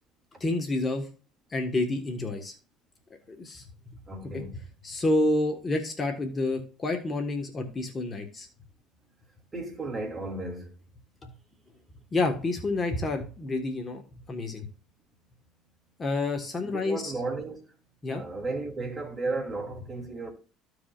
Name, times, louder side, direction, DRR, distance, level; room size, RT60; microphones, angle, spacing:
voice 1, 0.4-1.1 1.5-2.6 3.3-4.0 4.3-4.4 4.8-8.5 11.2-11.3 12.1-14.0 14.3-14.7 16.0-17.1 18.0-18.2, left 2 dB, 25° left, 1.5 m, -29 dB
voice 2, 4.1-4.5 9.5-10.7 16.6-17.7 18.1-20.3, right 3 dB, 25° right, 2.9 m, -34 dB
14.5 x 4.8 x 2.5 m
supercardioid pair, 95°, 0 cm